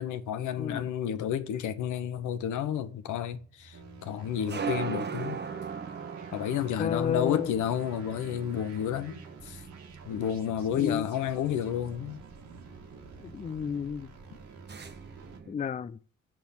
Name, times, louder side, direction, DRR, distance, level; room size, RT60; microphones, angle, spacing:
voice 1, 0.0-5.4 6.3-9.6 10.0-12.2, left 9 dB, 80° left, 1.1 m, -31 dB
voice 2, 0.6-0.9 6.8-7.5 10.7-11.0 13.2-14.1 15.5-16.0, left 7 dB, 25° left, 0.4 m, -31 dB
sound 1, 1.5-15.5, right 6 dB, 35° right, 1.1 m, -41 dB
sound 2, 3.7-15.4, right 5 dB, 70° right, 2.0 m, -51 dB
7.0 x 6.2 x 7.2 m
cardioid pair, 90°, 30 cm